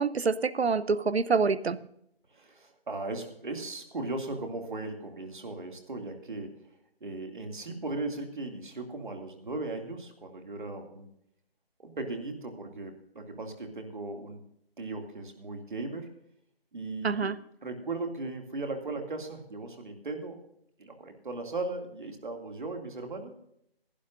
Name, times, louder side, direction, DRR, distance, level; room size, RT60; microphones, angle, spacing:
voice 1, 0.0-1.8 17.0-17.4, right 4 dB, 85° right, 16 dB, 0.9 m, -26 dB
voice 2, 2.3-6.5 7.0-11.1 11.8-14.4 14.8-16.1 16.7-17.3 17.6-20.4 20.8-23.3, right 2 dB, 50° right, 4 dB, 2.5 m, -37 dB
20.5 x 11.5 x 2.6 m, 0.73 s
figure-of-eight pair, 170°, 31 cm